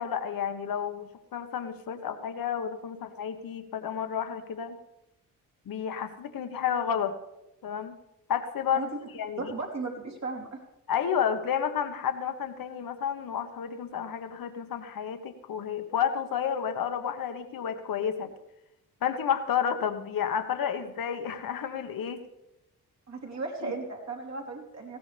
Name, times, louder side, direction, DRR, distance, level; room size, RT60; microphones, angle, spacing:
voice 1, 0.0-4.8 5.6-7.1 7.6-8.0 8.3-9.5 10.9-18.3 19.0-22.2 23.6-23.7, left 8 dB, 70° left, 7 dB, 1.4 m, -31 dB
voice 2, 9.4-10.6 23.1-25.0, right 3 dB, 50° right, 0 dB, 3.3 m, -36 dB
19.5 x 16.0 x 3.5 m, 0.89 s
cardioid pair, 90°, 35 cm